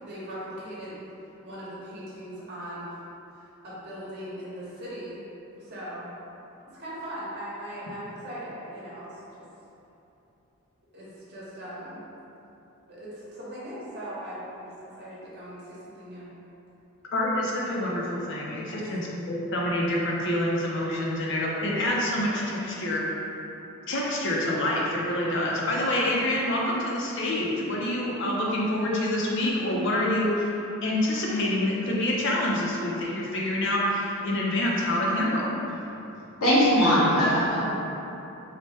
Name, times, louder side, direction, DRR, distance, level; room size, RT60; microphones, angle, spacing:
voice 1, 0.0-1.0 1.4-3.0 3.3-5.2 5.6-6.1 6.7-9.4 10.9-12.0 12.9-16.3 18.6-18.8, equal, 45° right, -9 dB, 1.0 m, -39 dB
voice 2, 17.1-23.0 23.9-30.5 30.8-35.5, left 1 dB, 55° left, -4 dB, 0.6 m, -27 dB
voice 3, 36.4-37.6, equal, 90° left, -8 dB, 1.0 m, -20 dB
3.3 x 2.1 x 4.1 m, 3.0 s
head